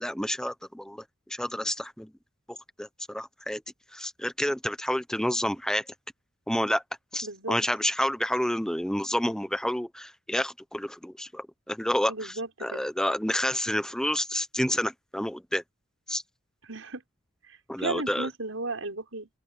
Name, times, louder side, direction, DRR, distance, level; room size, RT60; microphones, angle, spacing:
voice 1, 0.0-2.1 2.5-3.6 3.9-5.8 6.5-6.8 7.1-15.6 16.1-16.2 17.7-18.3, left 1 dB, 5° left, 0.8 m, -29 dB
voice 2, 7.2-7.6 12.0-12.9 16.7-17.0 17.5-19.3, right 3 dB, 80° right, 6.0 m, -35 dB
open air
head